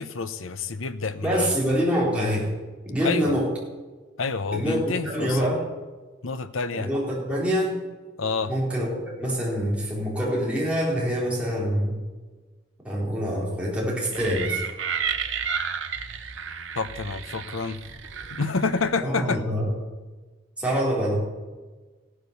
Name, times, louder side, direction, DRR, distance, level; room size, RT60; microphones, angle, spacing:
voice 1, 0.0-1.6 3.0-3.3 4.2-5.4 6.2-6.9 8.2-8.5 16.8-17.8 18.3-19.4, left 4 dB, 85° left, 11 dB, 0.9 m, -28 dB
voice 2, 1.2-2.5 2.8-3.5 4.5-5.7 6.7-7.8 8.5-12.0 12.8-14.6 19.0-19.7 20.6-21.2, equal, 5° right, -5 dB, 4.5 m, -25 dB
sound 1, 14.1-18.9, right 6 dB, 70° right, 1.2 m, -32 dB
16.0 x 9.8 x 7.0 m, 1.3 s
head